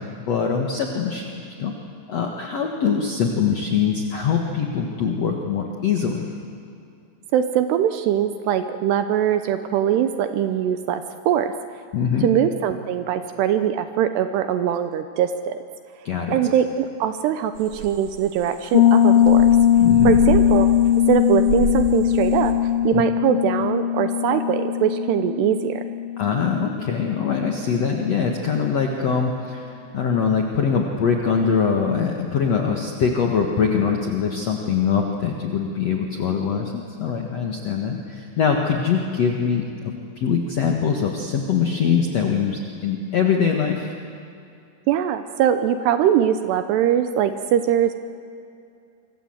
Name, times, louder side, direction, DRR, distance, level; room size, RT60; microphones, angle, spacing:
voice 1, 0.3-1.2 1.6-1.7 2.1-6.3 11.9-12.3 16.0-16.4 19.8-20.1 22.9-23.0 26.2-29.7 29.9-39.6 40.2-43.9, left 6 dB, 70° left, 1 dB, 1.6 m, -23 dB
voice 2, 7.3-11.5 12.2-15.6 16.3-19.5 20.0-20.7 21.1-22.5 22.8-25.8 44.9-47.9, right 10 dB, 80° right, 9 dB, 2.5 m, -22 dB
sound 1, 17.6-22.5, right 4 dB, 50° right, 3.0 m, -30 dB
Piano, 18.7-27.3, left 10 dB, 85° left, 3.5 m, -19 dB
26.5 x 25.0 x 7.9 m, 2.5 s
omnidirectional pair, 5.7 m